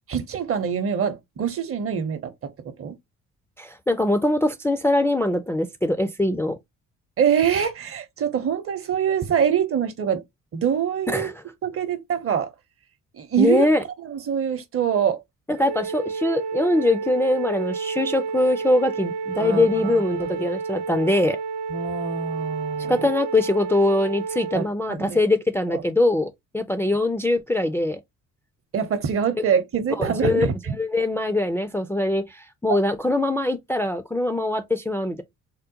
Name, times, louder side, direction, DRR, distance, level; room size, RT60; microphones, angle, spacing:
voice 1, 0.1-2.5 2.8-3.0 7.2-10.2 10.5-11.3 11.6-12.5 13.1-13.7 14.0-15.2 19.4-20.0 21.7-23.1 24.5-25.2 25.7-25.8 28.7-30.7 32.7-32.8, right 8 dB, 45° right, 0.7 m, -24 dB
voice 2, 3.6-6.6 11.1-11.3 13.4-13.8 15.5-21.4 22.9-28.0 30.0-35.2, left 2 dB, 10° left, 0.3 m, -22 dB
Wind instrument woodwind instrument, 15.5-24.7, right 5 dB, 85° right, 0.6 m, -30 dB
3.6 x 2.1 x 2.8 m
cardioid pair, 90°, 30 cm